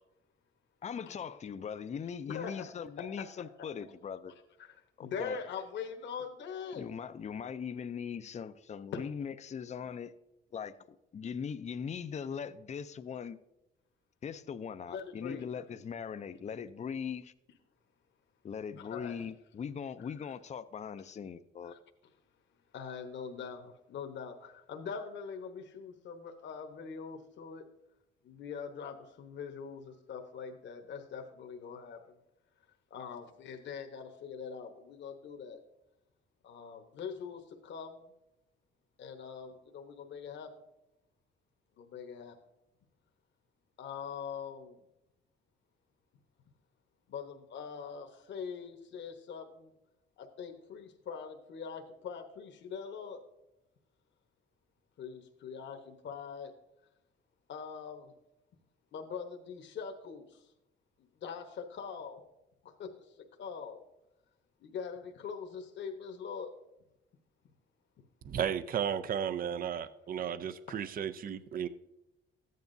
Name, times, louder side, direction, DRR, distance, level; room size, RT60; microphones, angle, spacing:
voice 1, 0.8-4.3 5.0-5.4 6.7-10.1 10.5-13.4 14.2-17.3 18.4-21.7, left 7 dB, 35° left, 0.5 m, -40 dB
voice 2, 2.3-2.7 3.0-3.3 3.6-3.7 4.6-6.9 8.9-9.0 14.9-15.5 18.8-19.2 20.2-20.3 21.6-21.8 22.7-27.6 28.2-32.2 32.9-35.6 36.4-38.0 39.0-40.5 41.8-42.4 43.8-44.8 47.1-49.7 50.2-53.2 55.0-56.5 57.5-58.1 58.9-60.5 61.0-62.2 62.6-63.8 64.6-66.5 70.7-70.8, left 6 dB, 65° left, 1.2 m, -43 dB
voice 3, 68.2-71.7, right 8 dB, 45° right, 0.5 m, -34 dB
14.0 x 9.4 x 2.7 m
cardioid pair, 90°, 20 cm